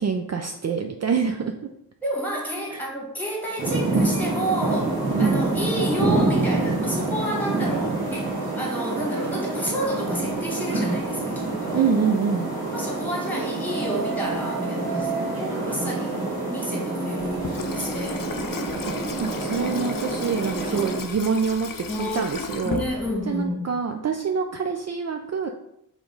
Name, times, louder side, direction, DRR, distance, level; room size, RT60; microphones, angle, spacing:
voice 1, 0.0-1.5 2.7-2.8 5.2-5.4 7.5-7.7 11.7-12.5 18.8-18.9 19.2-21.7 22.0-22.8 23.3-25.5, right 6 dB, 45° right, 4 dB, 0.4 m, -26 dB
voice 2, 2.0-11.9 12.7-18.3 21.9-22.3 22.6-23.7, equal, 5° left, -2 dB, 1.7 m, -30 dB
sound 1, 3.6-21.0, right 2 dB, 80° right, 1.7 m, -27 dB
Water tap faucet / Sink (filling or washing), 17.2-23.5, left 6 dB, 65° left, 0.6 m, -35 dB
5.0 x 3.8 x 5.2 m, 0.78 s
wide cardioid pair, 150°, 36 cm